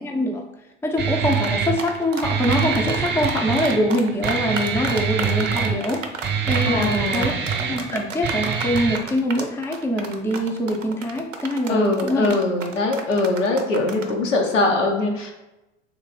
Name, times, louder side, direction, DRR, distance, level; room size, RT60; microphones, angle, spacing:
voice 1, 0.0-0.4 0.8-7.3 7.6-12.4, equal, 5° left, 2 dB, 0.5 m, -24 dB
Guitar, 1.0-9.0, right 6 dB, 30° right, 0.7 m, -25 dB
sound 1, 1.3-14.1, right 4 dB, 85° right, 0.5 m, -32 dB
voice 2, 6.7-7.4 11.7-15.3, left 2 dB, 80° left, 1 dB, 0.8 m, -22 dB
3.2 x 3.2 x 3.8 m, 0.99 s
figure-of-eight pair, 70°, 37 cm